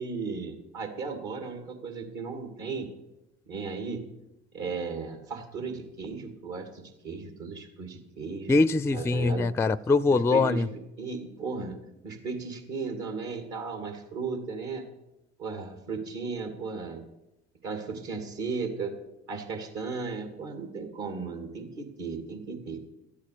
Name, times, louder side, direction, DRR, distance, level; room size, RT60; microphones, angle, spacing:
voice 1, 0.0-2.9 3.5-4.0 4.5-8.6 8.9-9.5 10.1-10.6 11.0-11.8 12.0-14.9 15.4-17.0 17.6-18.9 19.3-22.9, right 4 dB, 65° right, 6 dB, 2.5 m, -35 dB
voice 2, 8.5-10.7, left 3 dB, 10° left, 19 dB, 0.4 m, -23 dB
12.5 x 8.5 x 6.8 m, 0.92 s
hypercardioid pair, 55°, 31 cm